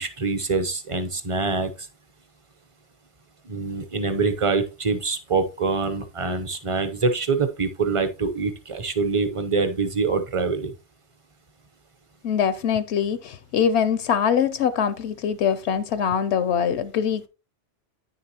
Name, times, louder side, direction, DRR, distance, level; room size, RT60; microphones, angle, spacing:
voice 1, 0.0-1.9 3.4-10.7, right 4 dB, 30° right, 0.7 m, -25 dB
voice 2, 12.2-17.3, left 7 dB, 75° left, 0.8 m, -23 dB
9.5 x 6.6 x 2.8 m
omnidirectional pair, 1.2 m